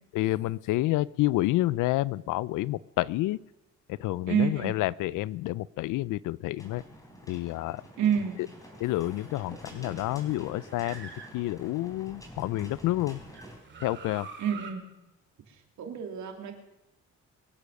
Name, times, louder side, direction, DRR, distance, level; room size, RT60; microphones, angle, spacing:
voice 1, 0.1-3.4 3.9-6.8 7.3-7.8 8.8-13.2 13.8-14.3, left 17 dB, 85° left, 21 dB, 0.5 m, -29 dB
voice 2, 4.3-4.7 8.0-8.4 14.4-14.9 15.8-16.5, right 8 dB, 70° right, 3 dB, 2.8 m, -28 dB
sound 1, 6.6-13.6, equal, 10° left, 4.1 m, -48 dB
sound 2, 8.5-12.0 12.5-14.7, right 5 dB, 40° right, 2.4 m, -48 dB
23.0 x 8.5 x 6.4 m, 0.95 s
cardioid pair, 90°, 30 cm